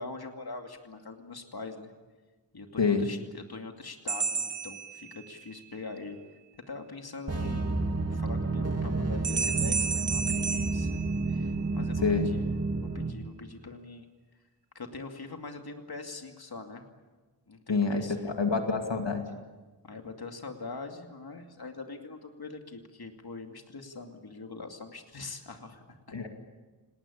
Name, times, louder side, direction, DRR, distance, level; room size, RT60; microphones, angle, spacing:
voice 1, 0.0-1.9 2.5-6.2 6.7-7.7 8.1-12.4 12.9-14.1 14.7-16.9 17.5-18.3 19.8-26.2, left 3 dB, 55° left, 4 dB, 2.5 m, -43 dB
voice 2, 2.8-3.1 12.0-12.3 17.7-19.2 26.1-26.3, left 4 dB, 75° left, 4 dB, 2.4 m, -27 dB
sound 1, 4.1-5.6 9.2-11.8, right 5 dB, 70° right, 1.5 m, -33 dB
sound 2, 7.3-13.1, right 3 dB, 35° right, 2.6 m, -30 dB
29.5 x 19.5 x 8.6 m, 1.3 s
wide cardioid pair, 85°, 44 cm